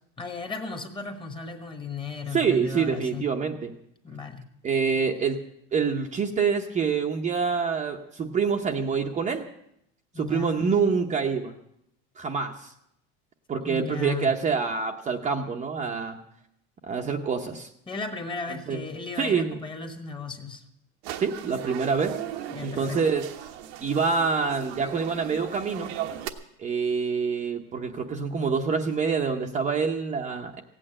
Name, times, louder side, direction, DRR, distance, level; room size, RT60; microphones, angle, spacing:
voice 1, 0.2-3.3 4.0-4.4 10.1-10.5 13.6-14.3 17.9-20.6 22.5-23.0, left 4 dB, 15° left, 6 dB, 1.3 m, -35 dB
voice 2, 2.3-3.7 4.6-5.4 5.7-9.5 10.2-11.5 12.2-12.7 13.5-16.2 16.9-17.7 18.5-18.8 19.2-19.6 21.2-22.2 22.6-23.3 23.8-25.9 26.6-30.6, right 5 dB, 20° right, 2 dB, 0.8 m, -26 dB
sound 1, 21.0-26.3, right 12 dB, 85° right, 1.2 m, -37 dB
16.0 x 8.9 x 8.7 m, 0.77 s
cardioid pair, 155°, 31 cm